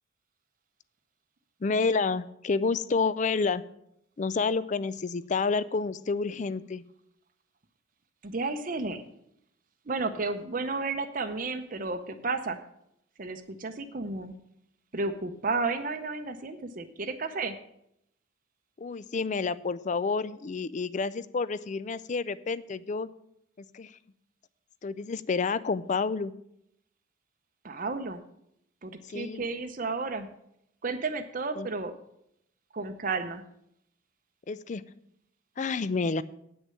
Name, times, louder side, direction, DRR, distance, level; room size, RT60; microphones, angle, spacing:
voice 1, 1.6-3.6 4.2-6.8 18.8-23.1 23.6-23.9 24.8-26.3 29.1-29.4 31.6-31.7 34.5-34.8 35.6-36.2, left 4 dB, 40° left, 17 dB, 0.4 m, -29 dB
voice 2, 8.2-9.0 9.9-12.6 13.2-14.3 14.9-17.6 27.6-28.2 28.8-30.3 30.8-31.9 32.7-33.4, right 3 dB, 45° right, 8 dB, 0.7 m, -32 dB
8.8 x 6.4 x 7.6 m, 0.76 s
head